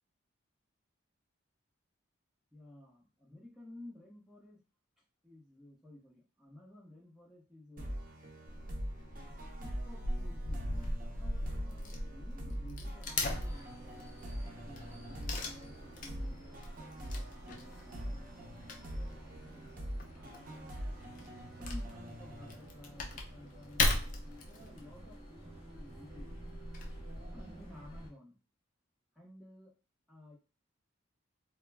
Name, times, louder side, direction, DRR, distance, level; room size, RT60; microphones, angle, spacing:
voice 1, 2.5-4.6 5.2-7.9 9.6-14.2 14.6-20.8 21.6-26.3 27.3-28.4 29.1-29.7 30.1-30.4, left 1 dB, ahead, -5 dB, 0.7 m, -55 dB
sound 1, 7.8-23.2, equal, 40° right, 0.5 m, -44 dB
Wood / Tearing, 8.5-28.1, left 2 dB, 40° left, 0.4 m, -40 dB
sound 2, 13.2-28.1, right 2 dB, 25° left, 1.1 m, -54 dB
2.1 x 2.1 x 3.3 m, 0.33 s
head